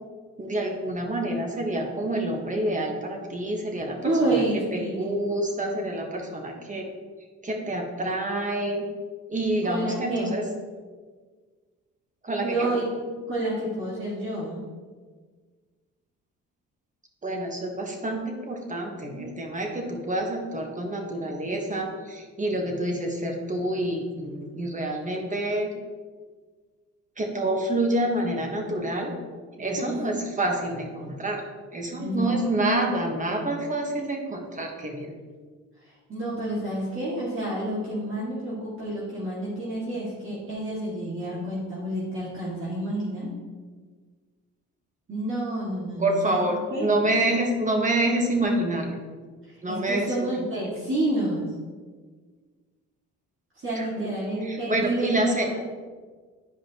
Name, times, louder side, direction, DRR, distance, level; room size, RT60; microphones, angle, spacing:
voice 1, 0.4-4.4 4.7-6.8 7.4-8.8 9.3-10.4 12.2-12.7 17.2-25.7 27.2-29.1 29.6-31.4 31.7-35.1 46.0-49.0 49.6-50.3 53.7-54.1 54.4-55.5, right 1 dB, 25° right, 2 dB, 1.5 m, -27 dB
voice 2, 4.0-5.1 9.6-10.3 12.4-12.8 13.3-14.6 29.8-30.0 32.0-32.4 35.8-43.3 45.1-46.9 49.5-51.5 53.6-55.6, right 1 dB, 45° right, -8 dB, 2.1 m, -29 dB
10.5 x 5.0 x 3.0 m, 1.5 s
cardioid pair, 90°, 30 cm